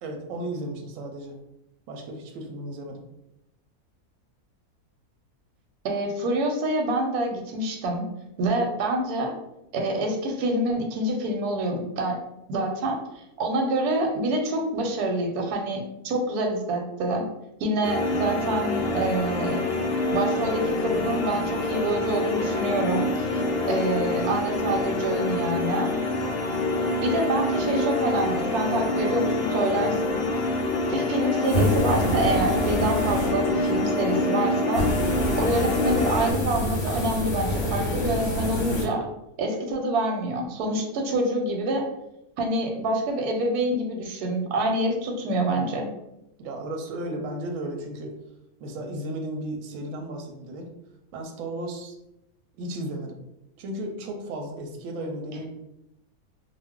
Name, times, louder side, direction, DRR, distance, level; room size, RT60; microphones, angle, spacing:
voice 1, 0.0-1.4 1.9-3.0 46.4-48.2 48.6-50.7 51.1-52.0 52.6-53.2 53.6-55.4, right 1 dB, 70° right, 2 dB, 0.9 m, -34 dB
voice 2, 5.8-8.0 8.4-9.3 9.7-12.2 12.5-17.2 17.6-19.6 20.1-25.9 27.0-30.2 30.9-34.8 35.4-39.1 39.4-41.9 42.4-45.9, right 1 dB, 90° right, 2 dB, 1.1 m, -26 dB
sound 1, 17.8-36.3, left 2 dB, 90° left, 0.5 m, -26 dB
sound 2, 31.4-33.8 34.7-38.9, equal, 55° left, 0.8 m, -27 dB
2.5 x 2.0 x 3.5 m, 0.86 s
omnidirectional pair, 1.6 m